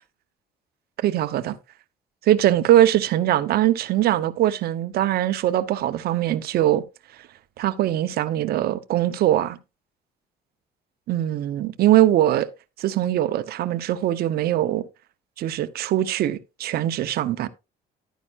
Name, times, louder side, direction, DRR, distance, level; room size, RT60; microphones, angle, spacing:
voice 1, 1.0-1.6 2.3-6.8 7.6-9.6 11.1-12.5 12.8-14.9 15.4-17.5, right 13 dB, 65° right, 0.9 m, -21 dB
11.5 x 9.2 x 2.5 m
cardioid pair, 110°, 17 cm